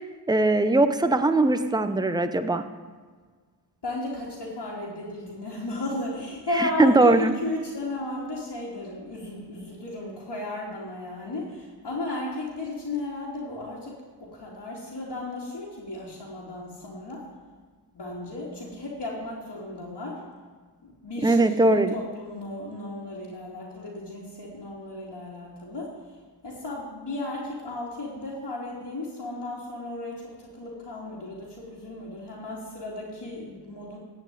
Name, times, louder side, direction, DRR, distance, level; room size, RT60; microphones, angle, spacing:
voice 1, 0.3-2.6 6.6-7.3 21.2-21.9, right 2 dB, 10° right, 8 dB, 0.8 m, -20 dB
voice 2, 3.8-13.9 14.2-17.3 17.9-20.2 20.8-26.2 26.4-34.0, left 2 dB, 70° left, -7 dB, 3.1 m, -35 dB
16.0 x 5.7 x 9.2 m, 1.5 s
wide cardioid pair, 65°, 42 cm